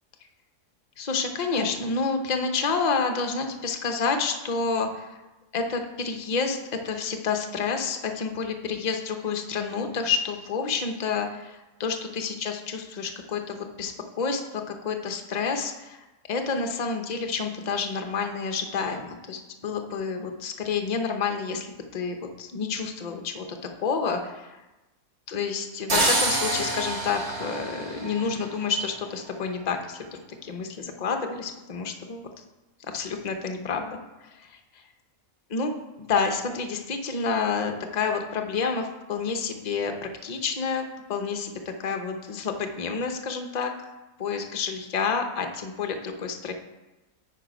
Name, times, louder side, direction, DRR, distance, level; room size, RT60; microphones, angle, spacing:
voice 1, 1.0-5.2 5.5-24.6 25.3-32.3 32.9-34.0 34.4-34.8 35.5-35.7 36.0-41.5 41.8-43.7 44.2-46.5, left 5 dB, 40° left, 5 dB, 0.6 m, -29 dB
sound 1, 25.9-28.8, right 2 dB, 55° right, 1.5 m, -27 dB
9.1 x 4.1 x 5.1 m, 1.1 s
omnidirectional pair, 1.5 m